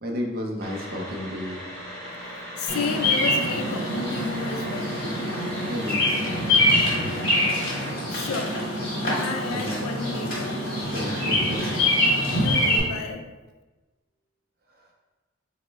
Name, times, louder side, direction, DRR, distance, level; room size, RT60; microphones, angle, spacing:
voice 1, 0.0-1.6 5.6-6.4 6.9-7.3 9.5-9.8 10.8-11.7 14.7-14.9, equal, 45° right, 1 dB, 0.5 m, -33 dB
sound 1, 0.6-7.9, equal, 15° left, 0.7 m, -38 dB
voice 2, 2.6-5.0 8.1-8.6 9.1-10.6 12.3-13.3, left 4 dB, 85° left, 5 dB, 0.4 m, -32 dB
Bird vocalization bird call bird song, 2.7-12.8, left 1 dB, 40° left, 1.0 m, -24 dB
4.1 x 2.1 x 3.2 m, 1.2 s
head